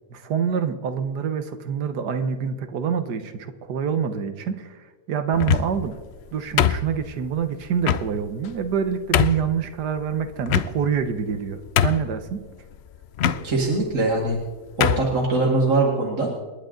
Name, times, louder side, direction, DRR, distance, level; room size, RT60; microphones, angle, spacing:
voice 1, 0.1-6.0 6.3-12.5, right 7 dB, 85° right, 10 dB, 1.7 m, -26 dB
sound 1, 5.3-5.9 6.6-7.2 7.8-8.1 8.6-8.7 9.1-9.5 10.5-11.0 11.4-11.5 11.8-12.2 13.2-13.4 14.2-14.4 14.8-15.1, left 9 dB, 75° left, 0.6 m, -21 dB
voice 2, 13.4-14.4 14.8-16.3, right 2 dB, 50° right, -3 dB, 2.5 m, -22 dB
28.0 x 11.0 x 3.9 m, 1.4 s
omnidirectional pair, 1.7 m